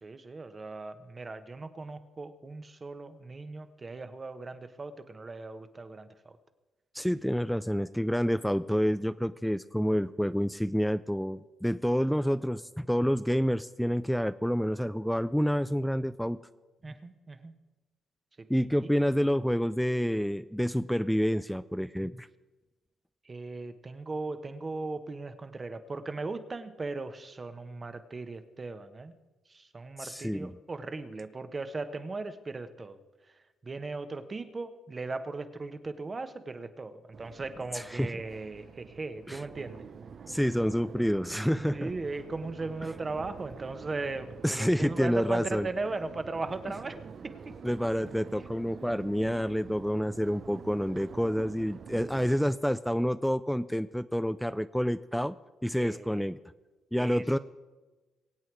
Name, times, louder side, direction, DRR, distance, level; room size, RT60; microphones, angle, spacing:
voice 1, 0.0-6.4 16.8-17.5 18.4-18.5 23.2-29.1 29.5-33.0 33.6-39.8 41.7-47.0 47.2-47.5 55.8-56.2 57.0-57.4, right 3 dB, 30° right, 10 dB, 1.1 m, -38 dB
voice 2, 6.9-16.4 18.5-22.3 30.0-30.6 37.7-38.2 39.3-39.4 40.3-41.9 44.4-45.7 47.6-55.3 55.6-56.4 56.9-57.4, equal, ahead, 13 dB, 0.4 m, -28 dB
Crowd, 37.1-52.3, right 6 dB, 50° right, 0.7 m, -46 dB
23.0 x 8.4 x 4.7 m, 1.2 s
cardioid pair, 90°, 0 cm